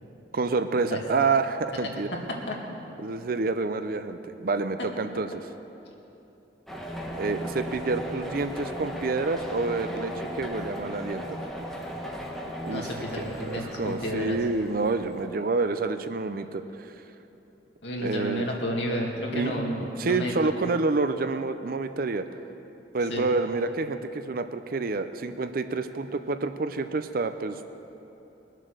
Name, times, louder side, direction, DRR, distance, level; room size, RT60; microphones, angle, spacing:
voice 1, 0.3-2.1 3.0-5.4 7.2-11.4 12.6-12.9 13.2-16.9 18.0-18.5 19.3-19.6 20.0-22.3 22.9-27.7, right 3 dB, 55° right, 9 dB, 0.5 m, -28 dB
sound 1, 6.7-15.3, equal, ahead, 1.4 m, -37 dB
voice 2, 12.7-14.4 17.8-20.3 23.1-23.3, equal, 80° left, -2 dB, 2.3 m, -31 dB
21.0 x 7.5 x 6.6 m, 3.0 s
head